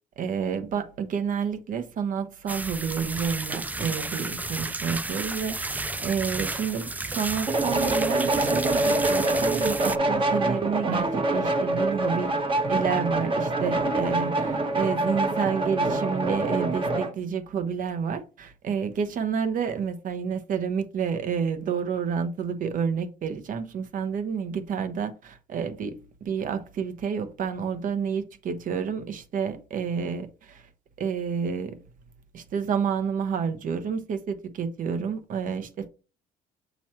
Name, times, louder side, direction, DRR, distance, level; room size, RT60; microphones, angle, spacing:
voice 1, 0.2-30.7 31.0-31.8 32.3-35.9, right 6 dB, 50° right, 0.9 m, -30 dB
sound 1, 2.5-10.0, right 2 dB, 10° right, 0.3 m, -32 dB
sound 2, 7.5-17.1, right 2 dB, 30° right, 1.1 m, -25 dB
7.4 x 3.1 x 4.4 m
cardioid pair, 110°, 17 cm